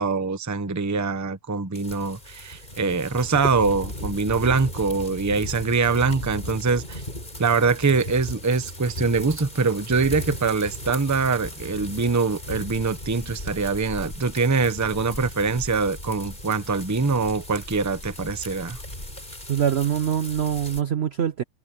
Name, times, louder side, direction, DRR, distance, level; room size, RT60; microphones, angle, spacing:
voice 1, 0.0-7.0 7.4-18.8, right 4 dB, 20° right, 0.5 m, -23 dB
sound 1, 1.7-20.8, left 1 dB, 25° left, 6.6 m, -37 dB
voice 2, 19.5-21.4, right 9 dB, 70° right, 0.6 m, -24 dB
omnidirectional pair, 2.0 m